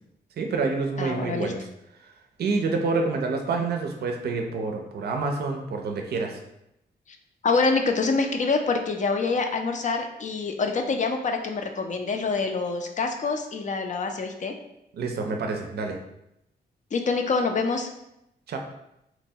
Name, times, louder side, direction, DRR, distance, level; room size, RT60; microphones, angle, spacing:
voice 1, 0.4-1.6 2.4-6.4 14.9-16.0 18.5-18.6, right 4 dB, 70° right, 3 dB, 0.4 m, -27 dB
voice 2, 1.0-1.5 7.4-14.5 16.9-17.9, left 4 dB, 45° left, 5 dB, 0.4 m, -26 dB
2.9 x 2.2 x 2.7 m, 0.82 s
cardioid pair, 70°, 17 cm